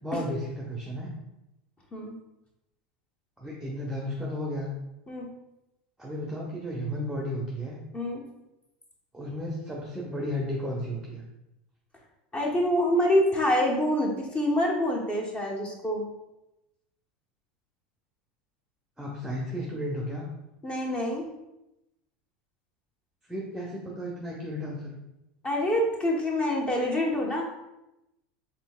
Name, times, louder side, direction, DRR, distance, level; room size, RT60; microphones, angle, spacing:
voice 1, 0.0-1.1 3.4-4.7 6.0-7.8 9.1-11.2 19.0-20.3 23.3-24.9, equal, 5° right, -3 dB, 0.7 m, -33 dB
voice 2, 12.3-16.0 20.6-21.2 25.4-27.4, left 1 dB, 25° left, -1 dB, 1.0 m, -26 dB
4.3 x 3.5 x 2.3 m, 0.92 s
hypercardioid pair, 100°, 5 cm